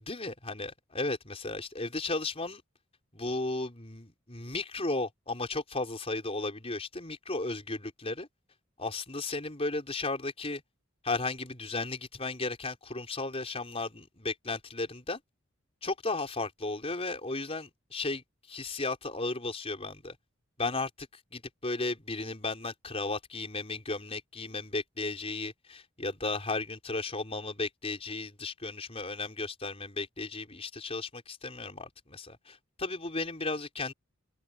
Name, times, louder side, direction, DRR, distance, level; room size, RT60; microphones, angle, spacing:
voice 1, 0.1-2.6 3.1-8.3 8.8-10.6 11.0-15.2 15.8-20.2 20.6-33.9, left 3 dB, 30° left, 4.7 m, -35 dB
open air
head